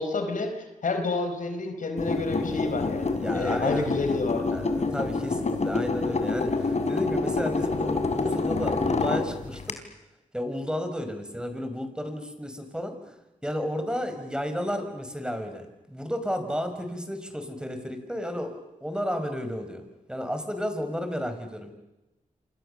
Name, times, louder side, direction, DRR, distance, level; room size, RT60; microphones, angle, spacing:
voice 1, 0.0-4.5, left 3 dB, 75° left, 7 dB, 4.7 m, -29 dB
sound 1, 2.0-9.7, left 3 dB, 55° left, 3.9 m, -27 dB
voice 2, 3.1-3.9 4.5-9.6 10.3-13.0 13.4-19.8 20.1-21.7, equal, 5° right, 7 dB, 6.0 m, -32 dB
27.5 x 27.0 x 7.0 m, 0.96 s
cardioid pair, 60°, 14 cm